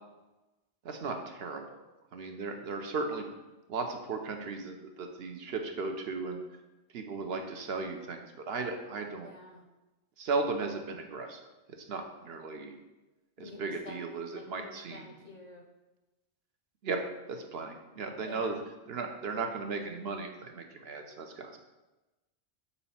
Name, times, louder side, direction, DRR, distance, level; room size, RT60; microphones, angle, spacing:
voice 1, 0.8-1.8 2.1-3.3 3.7-6.4 6.9-9.3 10.2-11.4 11.9-12.8 13.4-15.1 16.8-18.6 18.9-21.6, right 4 dB, 65° right, 4 dB, 0.8 m, -36 dB
voice 2, 9.2-9.6 13.4-15.7 18.2-18.6, left 2 dB, 45° left, 1 dB, 0.6 m, -49 dB
4.2 x 4.1 x 5.5 m, 1.1 s
omnidirectional pair, 1.2 m